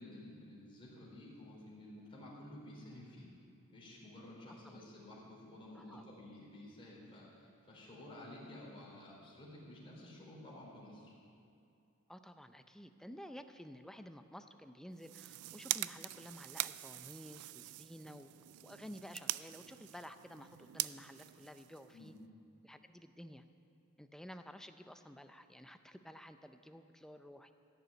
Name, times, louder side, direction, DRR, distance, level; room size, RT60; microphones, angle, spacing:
voice 1, 0.0-3.3 3.7-11.1 21.9-22.1, left 1 dB, 25° left, -5 dB, 3.8 m, -52 dB
voice 2, 12.1-18.3 18.6-22.1 22.6-23.4 24.0-27.5, equal, ahead, 8 dB, 0.5 m, -52 dB
sound 1, 14.9-22.2, right 16 dB, 75° right, 0.3 m, -43 dB
15.0 x 6.8 x 9.3 m, 2.5 s
head